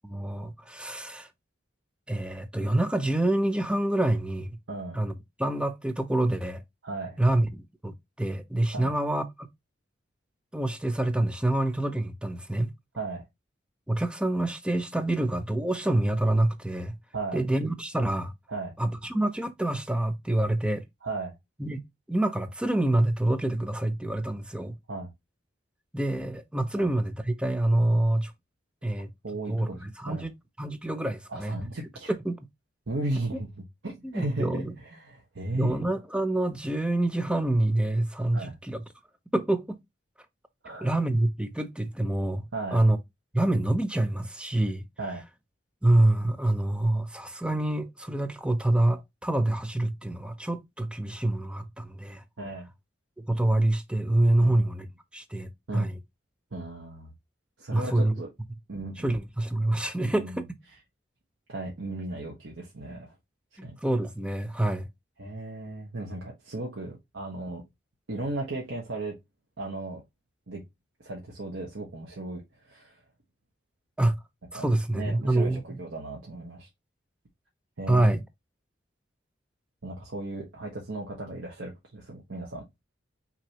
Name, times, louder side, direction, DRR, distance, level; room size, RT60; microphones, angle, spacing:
voice 1, 0.0-1.3 2.1-4.6 4.9-5.1 5.4-6.6 7.2-9.2 10.5-12.7 13.9-17.0 17.3-18.3 18.8-20.8 21.6-21.8 22.1-24.8 25.9-28.3 28.8-29.1 29.5-30.3 30.6-31.6 32.2-32.4 34.0-34.7 35.6-38.8 39.3-39.8 40.8-43.0 43.3-44.8 45.8-52.2 53.3-54.9 55.1-56.0 57.7-58.1 59.0-60.3 63.6-64.9 74.0-74.2 74.5-75.8 77.9-78.2, right 1 dB, 5° right, 0.5 m, -26 dB
voice 2, 4.7-5.0 6.8-7.2 8.7-8.9 12.9-13.2 17.1-17.4 18.5-18.7 21.0-21.3 24.9-25.1 26.8-26.9 29.2-30.3 31.3-32.1 32.9-33.5 33.8-35.8 38.3-38.6 40.6-40.9 42.5-42.8 45.0-45.2 52.4-52.7 54.4-54.7 55.7-55.9 56.5-57.1 57.6-58.3 58.7-59.2 60.0-60.5 61.5-63.1 63.6-63.8 65.2-67.6 68.1-69.1 69.6-70.0 70.5-70.6 71.0-73.0 74.5-74.7 74.9-76.7 77.8-78.1 79.8-82.6, right 2 dB, 80° right, 1.2 m, -36 dB
6.0 x 2.9 x 2.9 m
head